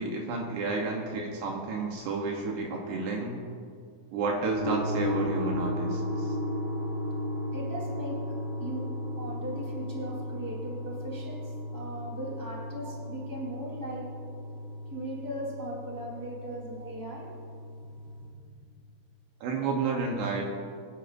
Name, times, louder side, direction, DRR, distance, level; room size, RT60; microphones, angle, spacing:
voice 1, 0.0-3.4 4.1-6.4 12.8-12.9 16.8-16.9 19.4-20.4, right 3 dB, 75° right, 0 dB, 3.0 m, -31 dB
sound 1, 4.6-18.3, equal, 30° right, 1.4 m, -35 dB
voice 2, 7.5-8.2 8.6-8.8 9.2-14.0 14.9-17.2, right 1 dB, 5° right, -4 dB, 2.9 m, -38 dB
26.0 x 10.5 x 2.6 m, 2.2 s
omnidirectional pair, 5.1 m